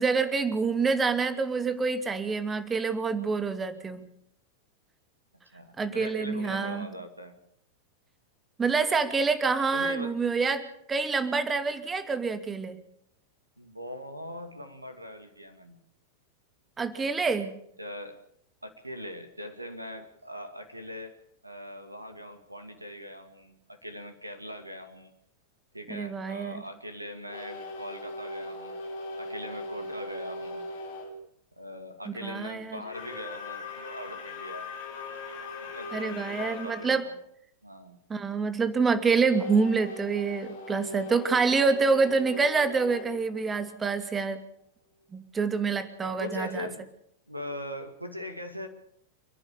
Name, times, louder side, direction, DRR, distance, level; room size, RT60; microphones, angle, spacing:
voice 1, 0.0-4.1 5.8-6.9 8.6-12.8 16.8-17.5 25.9-26.6 32.2-32.8 35.9-37.0 38.1-44.4 45.1-46.7, right 4 dB, 15° right, 10 dB, 2.5 m, -27 dB
voice 2, 5.5-7.3 9.7-10.1 13.6-15.8 17.8-18.2 18.6-21.2 21.4-25.1 25.7-28.8 29.2-30.6 31.6-34.7 35.7-37.1 37.6-38.0 46.2-46.9 47.3-48.7, equal, 85° right, 8 dB, 2.3 m, -41 dB
sound 1, 27.3-31.1 32.8-37.0 39.3-44.1, left 2 dB, 55° left, 5.1 m, -40 dB
29.5 x 11.0 x 8.4 m, 0.70 s
figure-of-eight pair, 90°, 0 cm